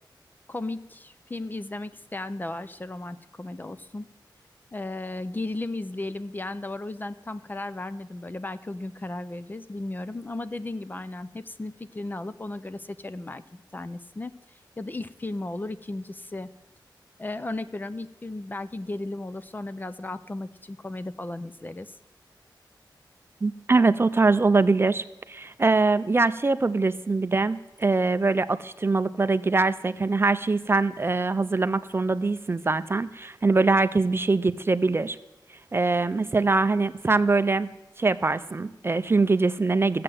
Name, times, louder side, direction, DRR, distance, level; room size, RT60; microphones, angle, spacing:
voice 1, 0.5-4.1 4.7-14.3 14.8-16.5 17.2-21.9, left 2 dB, 25° left, 12 dB, 0.5 m, -35 dB
voice 2, 23.4-35.2 35.7-37.7 38.0-40.0, right 3 dB, 30° right, 13 dB, 0.4 m, -23 dB
15.0 x 7.6 x 7.7 m, 0.95 s
wide cardioid pair, 120°, 8 cm